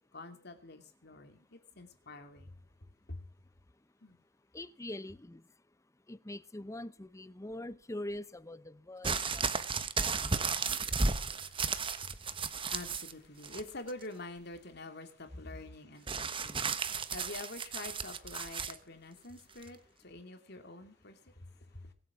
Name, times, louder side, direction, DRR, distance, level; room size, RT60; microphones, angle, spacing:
voice 1, 0.1-2.6 3.1-3.3 4.0-4.2 10.6-21.9, left 2 dB, 55° left, 2.7 m, -47 dB
voice 2, 4.5-5.4 6.1-9.5, left 1 dB, 15° left, 0.7 m, -43 dB
sound 1, 9.0-13.1 13.4-14.0 16.1-18.8 19.6-19.7, right 4 dB, 25° right, 1.2 m, -34 dB
23.5 x 8.8 x 6.2 m
head